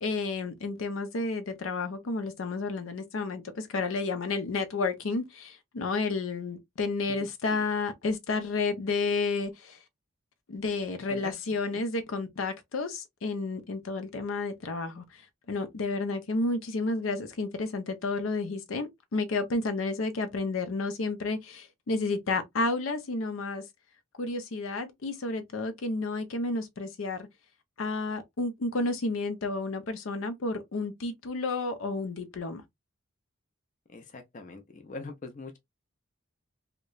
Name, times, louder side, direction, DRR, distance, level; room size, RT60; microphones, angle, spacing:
voice 1, 0.0-9.8 10.5-15.2 15.5-23.6 24.2-27.3 27.8-32.6, left 3 dB, 85° left, 0.6 m, -31 dB
voice 2, 7.2-7.6 11.1-11.3 11.7-11.8 33.9-35.6, left 3 dB, 40° left, 0.5 m, -43 dB
2.9 x 2.1 x 2.3 m
head